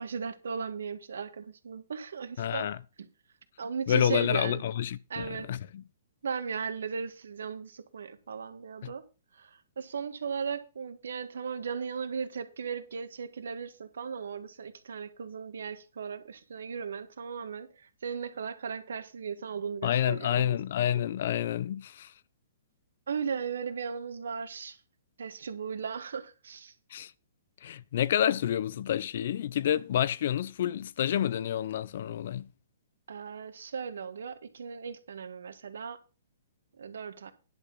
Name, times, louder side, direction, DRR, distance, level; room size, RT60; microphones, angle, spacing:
voice 1, 0.0-2.7 3.6-4.6 5.1-5.5 6.2-9.0 9.3-20.6 23.1-24.8 25.2-26.7 33.1-36.0 36.7-37.3, right 6 dB, 75° right, 1.7 m, -37 dB
voice 2, 2.4-2.8 3.9-5.8 8.8-8.9 19.8-22.1 26.9-27.1 27.6-32.5, left 10 dB, 60° left, 0.7 m, -29 dB
10.5 x 6.1 x 6.2 m
hypercardioid pair, 135°, 0 cm